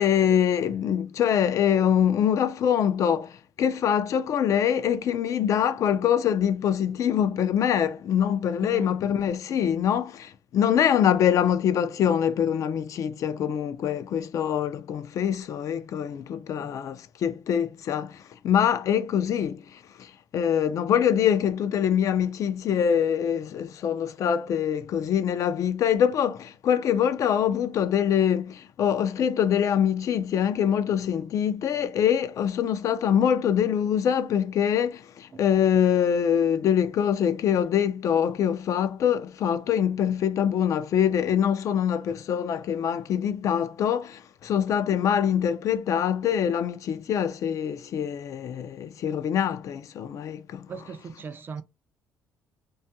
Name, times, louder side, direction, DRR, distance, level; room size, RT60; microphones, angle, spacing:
voice 1, 0.0-50.7, left 9 dB, 55° left, 0.3 m, -24 dB
voice 2, 16.5-16.8 35.3-35.4 50.7-51.6, right 5 dB, 30° right, 0.3 m, -39 dB
2.5 x 2.3 x 2.7 m
cardioid pair, 110°, 7 cm